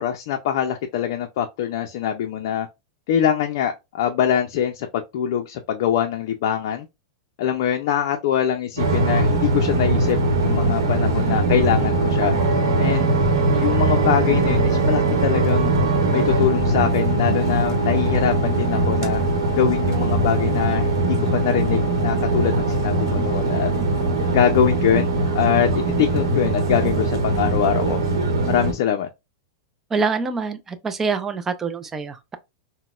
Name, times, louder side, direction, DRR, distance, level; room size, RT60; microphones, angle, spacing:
voice 1, 0.0-2.7 3.1-6.9 7.4-12.3 12.8-13.1 13.5-15.7 16.1-19.2 19.6-23.7 24.3-28.0 28.5-29.1, left 9 dB, 60° left, 0.4 m, -23 dB
sound 1, 8.8-28.7, right 2 dB, 90° right, 0.9 m, -21 dB
voice 2, 29.9-32.4, right 4 dB, 15° right, 0.3 m, -25 dB
3.9 x 2.1 x 2.4 m
supercardioid pair, 150°, 2 cm